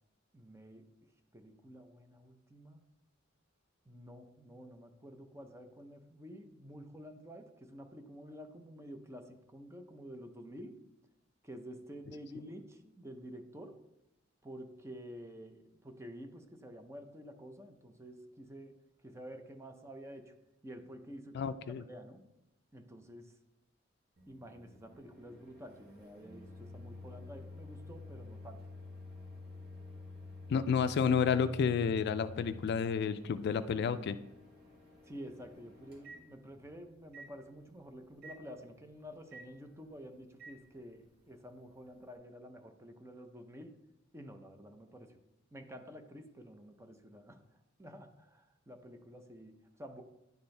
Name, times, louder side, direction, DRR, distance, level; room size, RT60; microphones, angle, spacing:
voice 1, 0.3-0.9 1.3-2.8 3.9-10.8 11.4-13.8 14.4-18.8 19.0-20.4 20.6-22.2 22.7-23.4 24.3-28.6 35.0-43.8 44.1-45.2 45.5-50.0, equal, 15° right, 6 dB, 0.6 m, -50 dB
voice 2, 21.3-21.8 30.5-34.2, left 6 dB, 55° left, 12 dB, 0.3 m, -30 dB
Microwave oven, 24.2-36.7 37.1-37.3 38.2-38.4 39.3-39.5 40.4-40.6, left 2 dB, 55° right, 1.4 m, -50 dB
10.5 x 4.4 x 3.3 m, 0.88 s
head